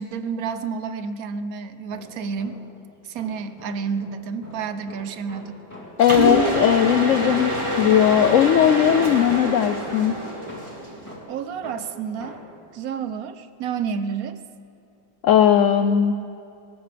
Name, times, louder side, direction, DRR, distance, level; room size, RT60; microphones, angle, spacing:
voice 1, 0.0-2.6 3.0-5.6 11.3-12.4 12.7-14.4, right 6 dB, 65° right, 11 dB, 1.0 m, -30 dB
sound 1, 1.7-2.8 3.2-7.7 8.1-12.6, equal, 10° left, 3.0 m, -43 dB
voice 2, 6.0-10.1 15.2-16.1, left 9 dB, 80° left, 8 dB, 0.7 m, -18 dB
Mechanisms, 6.0-11.1, equal, 15° right, 1.8 m, -25 dB
21.0 x 18.0 x 3.4 m, 2.5 s
omnidirectional pair, 1.8 m